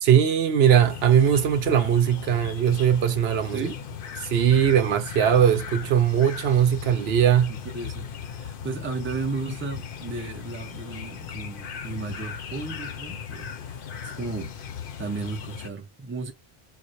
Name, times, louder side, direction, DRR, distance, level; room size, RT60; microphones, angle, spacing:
voice 1, 0.0-3.6 4.2-7.6, right 9 dB, 75° right, 0.9 m, -20 dB
sound 1, 0.6-15.7, left 7 dB, 60° left, 0.8 m, -37 dB
voice 2, 3.5-3.8 7.5-14.5 15.0-16.3, right 3 dB, 15° right, 0.6 m, -34 dB
4.6 x 2.1 x 2.6 m
omnidirectional pair, 1.1 m